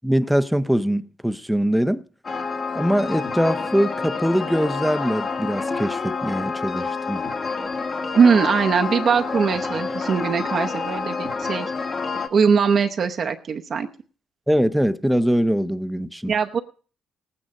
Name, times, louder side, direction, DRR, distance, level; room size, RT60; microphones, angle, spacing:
voice 1, 0.0-2.0 2.7-7.2 14.5-16.3, equal, ahead, 0.6 m, -22 dB
sound 1, 2.2-12.3, left 4 dB, 40° left, 1.4 m, -28 dB
voice 2, 8.1-11.7 12.3-13.9 16.3-16.6, right 6 dB, 50° right, 0.7 m, -20 dB
17.5 x 8.9 x 5.2 m
cardioid pair, 90°, 0 cm